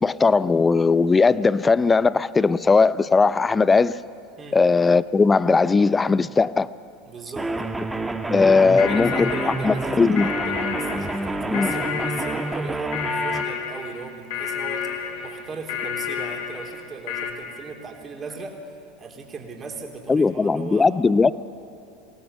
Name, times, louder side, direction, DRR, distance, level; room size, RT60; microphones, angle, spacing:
voice 1, 0.0-4.0 4.5-6.7 8.3-9.3 9.6-10.3 11.5-11.7 20.1-21.3, left 4 dB, 20° left, 0.5 m, -18 dB
voice 2, 7.1-7.5 8.6-21.0, right 4 dB, 30° right, 3.4 m, -38 dB
sound 1, 7.4-13.4, right 2 dB, 10° right, 1.4 m, -28 dB
sound 2, 8.8-17.3, left 7 dB, 65° left, 2.8 m, -30 dB
23.0 x 18.0 x 7.1 m
hypercardioid pair, 80°, 0 cm